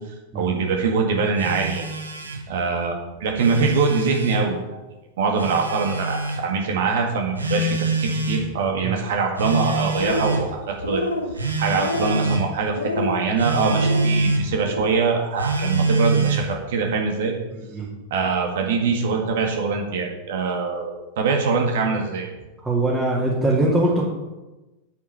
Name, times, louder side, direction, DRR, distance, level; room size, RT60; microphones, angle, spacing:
voice 1, 0.3-1.9 2.5-3.0 3.2-4.6 5.2-11.0 11.6-17.3 18.1-22.3, right 4 dB, 55° right, 2 dB, 1.9 m, -23 dB
Telephone, 1.4-2.5 3.2-4.4 5.4-6.4 7.4-8.5 9.4-10.5 11.4-12.5 13.4-14.5 15.4-16.5, right 2 dB, 80° right, 1.5 m, -25 dB
sound 1, 9.9-10.5 10.8-11.3 11.7-12.3 12.7-13.2 13.7-14.1 14.5-15.0, left 2 dB, 80° left, 1.0 m, -28 dB
voice 2, 22.6-24.0, right 2 dB, 15° right, -6 dB, 2.5 m, -21 dB
8.7 x 8.5 x 5.7 m, 1.1 s
figure-of-eight pair, 90°, 0 cm